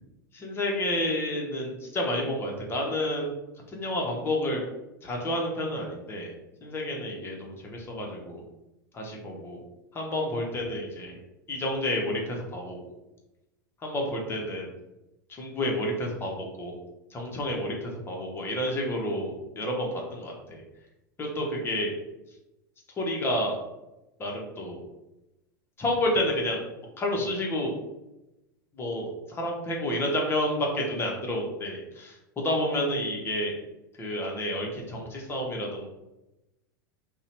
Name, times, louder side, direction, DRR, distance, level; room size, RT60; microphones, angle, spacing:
voice 1, 0.3-3.3 3.7-4.6 5.0-6.3 6.6-8.4 8.9-9.6 9.9-11.2 11.5-12.9 13.8-14.7 15.3-16.7 17.1-20.6 21.2-21.9 23.0-23.6 24.2-24.8 25.8-26.6 27.0-27.7 28.8-33.5 34.0-35.9, left 1 dB, 20° left, -1 dB, 0.7 m, -30 dB
2.7 x 2.1 x 2.7 m, 0.96 s
hypercardioid pair, 90°, 11 cm